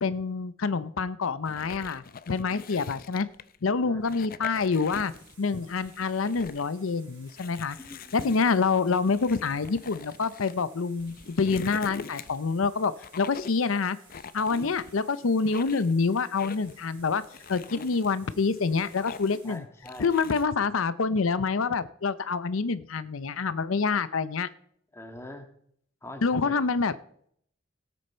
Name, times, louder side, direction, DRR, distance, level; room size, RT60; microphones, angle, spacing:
voice 1, 0.0-3.3 3.6-5.1 5.4-7.8 8.1-14.0 14.3-17.2 17.5-19.6 20.0-24.5 26.2-26.9, left 4 dB, 85° left, 15 dB, 0.6 m, -27 dB
sound 1, 1.4-3.6 4.0-5.4 5.7-6.7 7.3-10.5 11.0-12.5 13.0-13.7 14.1-15.0 15.4-15.9 16.4-16.8 17.2-18.1 18.5-19.5 19.9-20.5, left 5 dB, 45° left, 0.6 m, -43 dB
sound 2, 4.9-19.6, right 3 dB, 25° right, 4.4 m, -57 dB
voice 2, 7.8-8.4 14.5-14.8 17.7-18.0 19.4-20.1 24.9-25.5 26.0-26.5, left 1 dB, 15° left, 6 dB, 1.7 m, -43 dB
17.5 x 8.4 x 4.4 m, 0.64 s
head